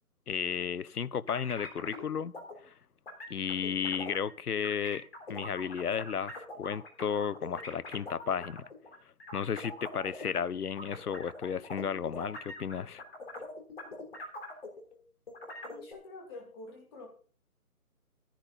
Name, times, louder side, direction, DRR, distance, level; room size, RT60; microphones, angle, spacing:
voice 1, 0.3-2.4 2.6-2.7 3.3-5.0 5.3-8.7 9.3-13.0, left 7 dB, 90° left, 0.7 m, -33 dB
sound 1, 1.3-2.0 2.3-2.5 3.1-4.3 4.6-10.4 10.8-15.0 15.3-15.9, left 2 dB, 40° left, 3.7 m, -43 dB
voice 2, 15.7-17.1, left 2 dB, 15° left, 2.4 m, -47 dB
13.5 x 10.5 x 4.0 m
figure-of-eight pair, 155°, 44 cm